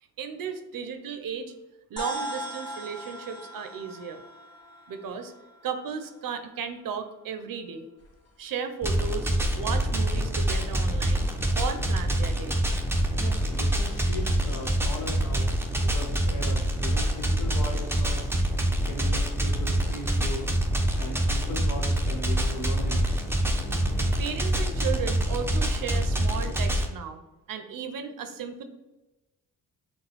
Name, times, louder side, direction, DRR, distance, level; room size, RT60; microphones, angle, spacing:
voice 1, 0.2-1.5 1.9-4.2 4.9-5.3 5.6-7.9 8.4-11.3 11.5-12.6 24.2-27.2 27.5-28.6, right 6 dB, 65° right, 8 dB, 0.6 m, -35 dB
sound 1, 2.0-6.6, right 1 dB, 10° left, 1.2 m, -39 dB
sound 2, 8.0-8.6 8.9-12.6 12.9-22.3 22.6-24.1, left 2 dB, 45° left, 0.8 m, -44 dB
sound 3, 8.8-26.9, right 1 dB, 5° right, 0.6 m, -26 dB
voice 2, 13.2-15.5 15.8-18.3 18.8-20.5 20.9-23.3, left 1 dB, 60° left, 0 dB, 1.2 m, -38 dB
5.9 x 2.3 x 3.4 m, 1.0 s
cardioid pair, 80°, 36 cm